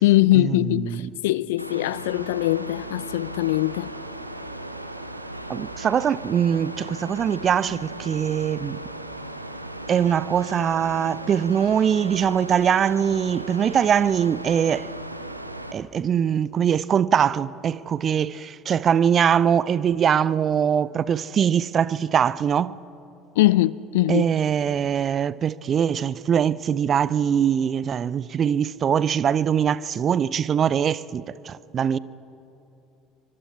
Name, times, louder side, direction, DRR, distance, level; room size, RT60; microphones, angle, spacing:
voice 1, 0.0-4.0 23.4-24.3, left 16 dB, 65° left, 0.4 m, -21 dB
Mechanical fan, 1.6-15.7, right 1 dB, 90° right, 0.8 m, -37 dB
voice 2, 5.5-8.8 9.9-14.9 15.7-22.8 24.1-32.0, right 8 dB, 35° right, 0.5 m, -22 dB
26.0 x 24.5 x 4.5 m
figure-of-eight pair, 65°, 0 cm